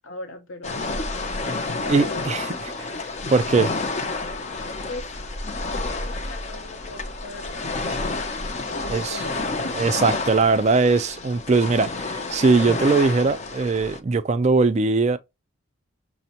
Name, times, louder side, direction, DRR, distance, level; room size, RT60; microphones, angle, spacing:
voice 1, 0.0-0.9 1.7-2.3 4.9-5.1 5.7-8.1 8.7-10.0, left 2 dB, 65° left, 0.7 m, -39 dB
sound 1, 0.6-14.0, left 3 dB, 30° left, 0.4 m, -30 dB
voice 2, 1.9-2.5 2.8-3.0 3.3-3.7 8.9-9.2 9.7-15.2, right 4 dB, 30° right, 0.3 m, -20 dB
5.9 x 2.1 x 2.8 m
head